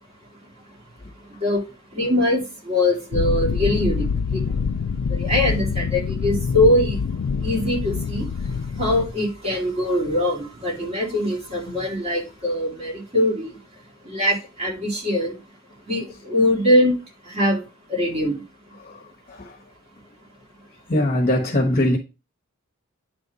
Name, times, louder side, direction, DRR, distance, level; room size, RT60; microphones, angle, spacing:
voice 1, 1.9-4.1 4.3-4.4 5.1-7.0 7.4-8.3 8.8-13.5 14.1-15.3 15.9-16.9 17.3-17.6 17.9-18.4, left 1 dB, 30° right, 2.5 m, -22 dB
sound 1, 3.1-9.1, left 5 dB, 70° left, 0.4 m, -25 dB
voice 2, 18.8-19.6 20.9-22.0, left 1 dB, 35° left, 1.1 m, -22 dB
9.4 x 3.5 x 4.0 m
head